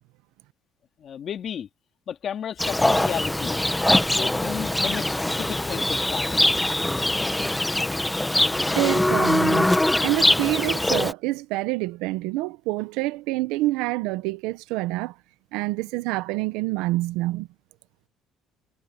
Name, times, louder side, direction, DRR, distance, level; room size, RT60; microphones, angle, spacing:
voice 1, 1.0-1.7 2.1-3.6 4.1-6.4, left 8 dB, 40° left, 3.5 m, -33 dB
Livestock farm animals working animals, 2.6-11.1, left 1 dB, 5° left, 0.9 m, -22 dB
voice 2, 8.8-15.1 15.5-17.5, right 19 dB, 85° right, 0.8 m, -27 dB
cardioid pair, 135°, 0 cm